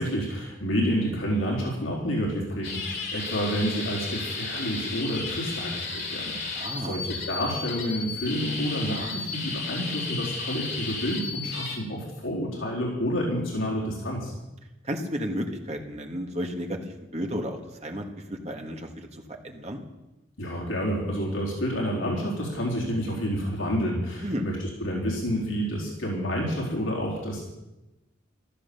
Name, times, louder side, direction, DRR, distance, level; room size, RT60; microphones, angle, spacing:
voice 1, 0.0-14.3 20.4-27.5, equal, 75° left, -3 dB, 4.1 m, -29 dB
sound 1, 2.6-11.8, left 4 dB, 55° left, 3.6 m, -34 dB
voice 2, 6.5-7.0 14.8-16.8 17.1-18.0 18.3-19.8 24.2-24.4, equal, 35° right, 3 dB, 1.8 m, -32 dB
15.0 x 13.5 x 7.0 m, 0.99 s
head